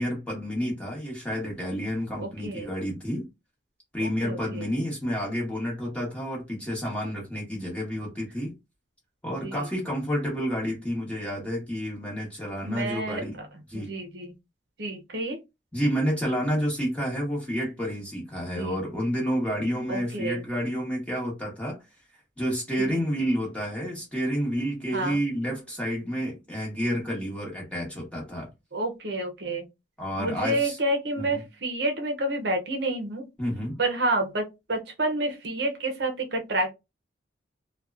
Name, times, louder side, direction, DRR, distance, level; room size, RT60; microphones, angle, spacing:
voice 1, 0.0-3.3 3.9-8.5 9.2-13.3 13.7-13.9 15.7-21.8 22.4-28.5 30.0-30.8 31.2-31.4 33.4-33.8, equal, 5° left, 1.1 m, -30 dB
voice 2, 2.2-2.7 4.0-4.7 9.3-9.7 12.7-13.5 13.7-14.3 14.8-15.4 18.5-18.8 19.9-20.4 22.9-23.0 24.9-25.2 28.7-29.7 30.2-33.3 33.8-36.7, right 2 dB, 60° right, 0.6 m, -29 dB
2.8 x 2.1 x 2.4 m
head